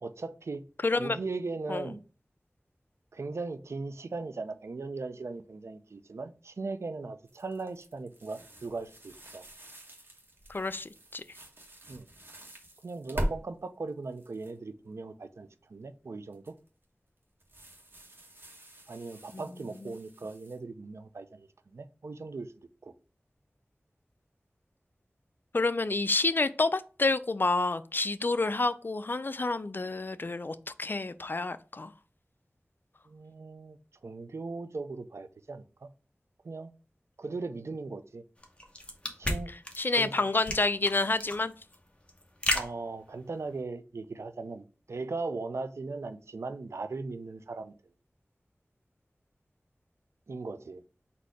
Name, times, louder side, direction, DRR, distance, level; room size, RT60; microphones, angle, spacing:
voice 1, 0.0-0.6 1.0-2.0 3.1-9.4 11.9-12.1 12.8-16.5 18.9-22.5 22.8-22.9 33.1-33.8 34.0-35.9 36.4-36.7 37.2-38.2 39.2-39.5 40.0-40.3 42.5-47.7 50.3-50.8, right 3 dB, 80° right, 0.4 m, -38 dB
voice 2, 0.8-1.2 1.7-1.9 10.5-11.2 19.3-19.4 19.8-19.9 25.5-31.9 39.8-41.5, left 3 dB, 50° left, 0.4 m, -29 dB
sound 1, 7.3-13.3 13.9-14.5 16.3-16.7 17.4-20.6, equal, 50° right, 1.4 m, -42 dB
sound 2, 38.4-43.6, left 1 dB, 25° left, 0.9 m, -34 dB
4.2 x 2.7 x 4.6 m
wide cardioid pair, 55°, 5 cm